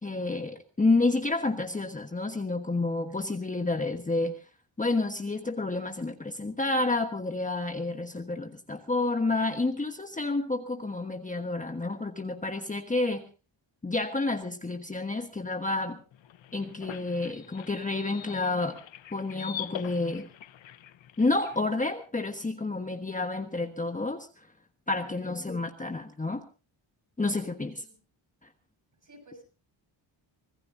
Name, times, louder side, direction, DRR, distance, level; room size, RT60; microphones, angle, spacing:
voice 1, 0.0-4.4 4.8-13.2 13.8-16.0 16.5-18.8 19.1-20.3 21.2-24.3 24.9-26.4 27.2-27.8, left 2 dB, 15° left, 1.3 m, -29 dB
sound 1, 16.1-21.6, left 11 dB, 70° left, 1.0 m, -44 dB
voice 2, 25.0-25.4 27.8-28.0 29.0-29.4, equal, 40° right, 7.2 m, -54 dB
25.0 x 18.0 x 2.7 m
wide cardioid pair, 125°, 47 cm